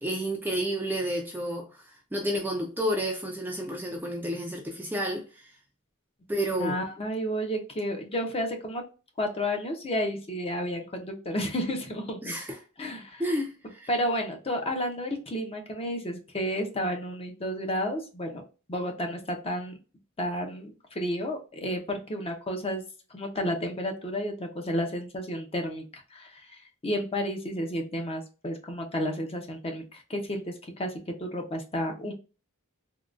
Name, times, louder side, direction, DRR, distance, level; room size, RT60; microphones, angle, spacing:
voice 1, 0.0-1.8 2.1-5.5 6.3-6.8 12.2-12.6 13.2-13.9, equal, 10° right, 0.4 m, -30 dB
voice 2, 6.6-8.8 9.2-12.4 12.8-13.2 13.9-18.4 18.7-19.7 20.2-22.8 23.1-26.5 26.8-32.1, equal, 25° left, 0.7 m, -31 dB
3.7 x 2.3 x 2.4 m
head